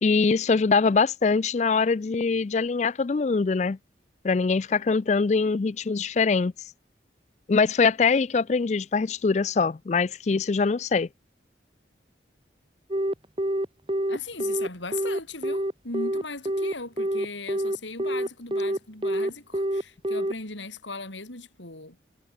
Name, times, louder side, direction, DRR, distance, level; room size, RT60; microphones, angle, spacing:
voice 1, 0.0-3.8 4.2-6.5 7.5-11.1, left 4 dB, 40° left, 0.4 m, -23 dB
Telephone, 12.9-20.3, right 1 dB, 25° right, 1.5 m, -26 dB
voice 2, 14.1-22.0, left 3 dB, 85° left, 5.2 m, -38 dB
head